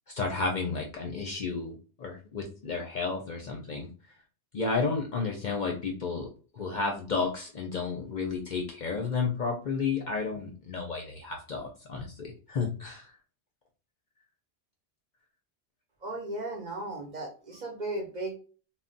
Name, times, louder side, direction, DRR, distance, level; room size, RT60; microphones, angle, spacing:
voice 1, 0.2-3.9 4.5-6.3 6.6-13.1, left 4 dB, 55° left, 2 dB, 0.6 m, -32 dB
voice 2, 16.0-18.4, right 2 dB, 45° right, 2 dB, 0.7 m, -36 dB
2.2 x 2.1 x 3.8 m, 0.37 s
omnidirectional pair, 1.1 m